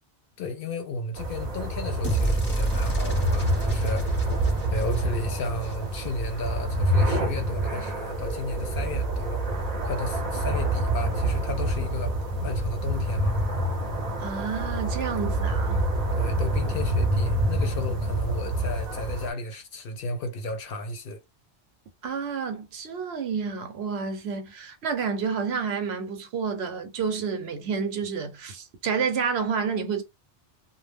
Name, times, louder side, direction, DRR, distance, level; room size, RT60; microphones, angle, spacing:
voice 1, 0.4-4.1 4.7-9.4 9.8-13.4 16.2-21.2, left 2 dB, 60° left, 0.7 m, -34 dB
sound 1, 1.2-19.3, right 1 dB, 45° right, 0.7 m, -27 dB
sound 2, 2.0-6.3, right 1 dB, 10° left, 0.8 m, -31 dB
voice 2, 14.2-15.8 22.0-30.0, right 6 dB, 70° right, 0.9 m, -29 dB
2.2 x 2.0 x 3.3 m
omnidirectional pair, 1.1 m